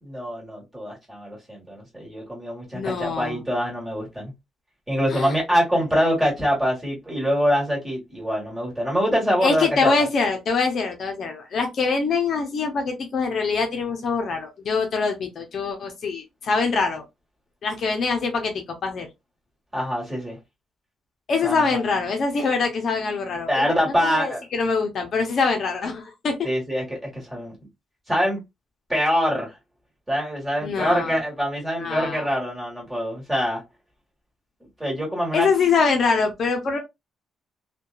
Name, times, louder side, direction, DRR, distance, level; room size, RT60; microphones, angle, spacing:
voice 1, 0.0-4.3 4.9-9.9 19.7-20.4 21.4-21.8 23.5-24.4 26.4-27.5 28.1-28.4 28.9-29.5 30.1-33.6 34.8-35.5, equal, 10° right, 1.5 m, -24 dB
voice 2, 2.7-3.4 5.1-5.3 9.4-17.0 17.6-19.1 21.3-26.4 30.6-31.2 31.8-32.2 35.3-36.8, left 4 dB, 50° left, 0.6 m, -24 dB
2.7 x 2.2 x 2.3 m
cardioid pair, 135°, 0 cm